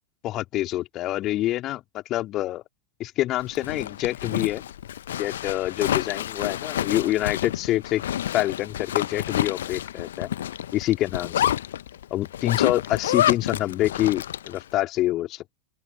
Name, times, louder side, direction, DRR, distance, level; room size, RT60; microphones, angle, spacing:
voice 1, 0.2-2.6 3.0-4.6 5.2-8.0 8.3-10.3 10.7-11.5 12.1-15.5, left 15 dB, 35° left, 3.3 m, -26 dB
Zipper (clothing), 3.4-14.6, left 11 dB, 60° left, 1.1 m, -29 dB
open air
figure-of-eight pair, 90°, 0 cm